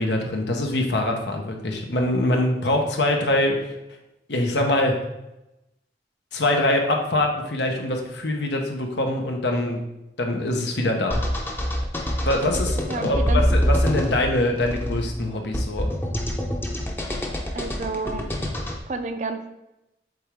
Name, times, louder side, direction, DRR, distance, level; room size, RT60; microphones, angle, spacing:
voice 1, 0.0-3.7 4.3-5.0 6.3-9.8 10.2-11.2 12.2-15.9, left 1 dB, 85° left, 2 dB, 1.1 m, -24 dB
sound 1, 11.1-18.8, equal, 10° left, 0.7 m, -25 dB
voice 2, 12.9-13.6 17.5-18.3 18.9-19.5, right 3 dB, 40° right, 8 dB, 0.5 m, -30 dB
7.8 x 3.8 x 3.5 m, 0.93 s
head